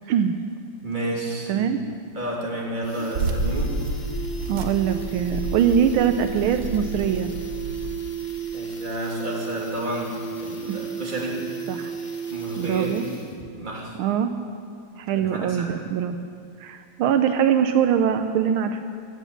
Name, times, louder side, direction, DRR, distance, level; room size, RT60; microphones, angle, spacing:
voice 1, 0.8-1.7 2.1-3.8 8.5-11.5 12.3-13.0 13.5-14.0 15.1-15.7, right 1 dB, 20° right, -2 dB, 2.2 m, -31 dB
voice 2, 1.5-1.8 4.5-7.3 10.7-10.8 11.7-11.9 12.6-13.0 14.0-14.3 15.0-16.2 16.6-18.8, right 8 dB, 80° right, 8 dB, 1.5 m, -22 dB
sound 1, 1.9-2.0 2.3-2.4 2.7-13.5 13.8-13.9, right 5 dB, 35° left, 0.7 m, -34 dB
sound 2, 3.1-8.0, right 2 dB, 55° right, 1.3 m, -30 dB
16.5 x 9.2 x 7.3 m, 2.3 s
omnidirectional pair, 2.3 m